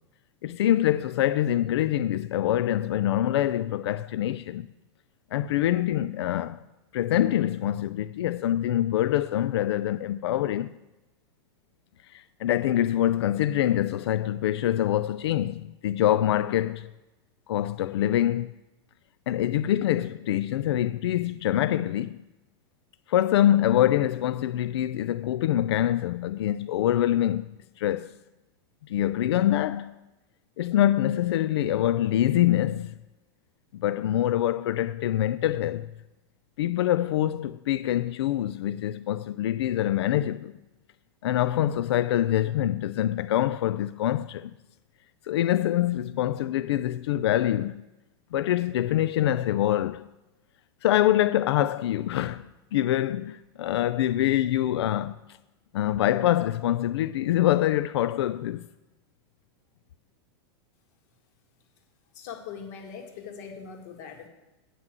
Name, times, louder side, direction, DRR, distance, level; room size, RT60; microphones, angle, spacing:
voice 1, 0.4-4.7 5.3-6.6 6.9-10.7 12.1-16.9 17.5-18.5 19.3-22.2 23.1-27.5 27.8-28.1 28.9-29.9 30.6-33.0 33.7-35.9 36.6-40.5 41.2-44.5 45.3-47.8 48.3-50.1 50.8-55.2 55.7-58.7, left 12 dB, 90° left, 0.4 m, -25 dB
voice 2, 62.1-64.3, left 6 dB, 40° left, 1.9 m, -41 dB
9.3 x 6.0 x 7.7 m
supercardioid pair, 180°, 13 cm